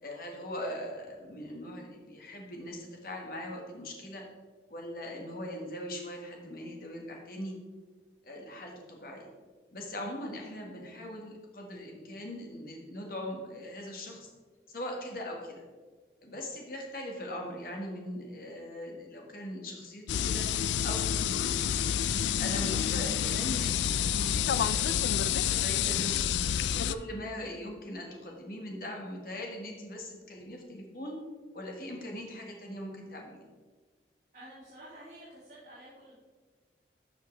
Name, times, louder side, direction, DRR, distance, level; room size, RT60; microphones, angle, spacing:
voice 1, 0.0-4.2 4.7-7.5 8.2-9.3 9.7-14.3 14.7-15.6 16.2-20.5 20.8-22.0 22.4-26.1 26.9-31.2 31.5-33.4, left 1 dB, 55° left, 1 dB, 1.5 m, -40 dB
sound 1, 20.1-26.9, left 9 dB, 80° left, 0.3 m, -28 dB
voice 2, 34.3-36.2, right 1 dB, 45° right, -10 dB, 2.6 m, -50 dB
12.0 x 5.0 x 3.3 m, 1.4 s
head